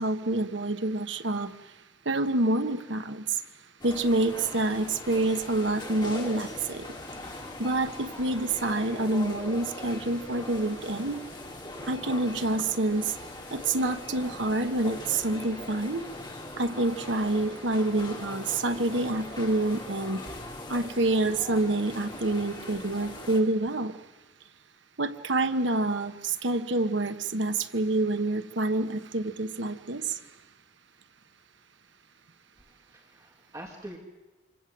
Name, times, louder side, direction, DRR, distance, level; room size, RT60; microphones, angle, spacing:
voice 1, 0.0-1.5 2.1-3.2 3.8-6.9 7.6-11.2 11.9-13.1 13.5-16.0 16.6-20.2 20.7-23.9 25.0-30.0, right 2 dB, 75° right, 9 dB, 1.3 m, -27 dB
sound 1, 3.8-23.4, left 2 dB, 25° left, 4.2 m, -41 dB
voice 2, 32.6-34.0, right 1 dB, 15° right, 0 dB, 2.5 m, -45 dB
26.5 x 26.0 x 7.8 m, 1.1 s
head